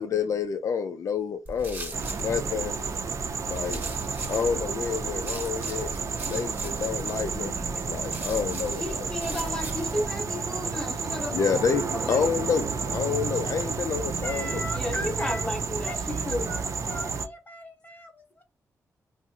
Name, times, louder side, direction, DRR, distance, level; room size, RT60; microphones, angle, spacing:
voice 1, 0.0-1.9 2.2-2.7 3.5-3.8 4.3-5.9 6.3-7.5 7.9-9.0 11.3-12.7 12.9-14.6 14.9-15.1, left 6 dB, 60° left, 0.4 m, -28 dB
sound 1, 1.5-10.1, right 1 dB, 30° right, 1.0 m, -39 dB
sound 2, 1.9-17.3, right 5 dB, 55° right, 0.5 m, -31 dB
voice 2, 8.8-11.6 11.9-12.2 14.7-16.7, left 1 dB, 10° left, 0.6 m, -33 dB
voice 3, 14.2-15.5 15.9-18.4, equal, 30° left, 1.1 m, -39 dB
2.6 x 2.0 x 3.7 m
cardioid pair, 75°, 6 cm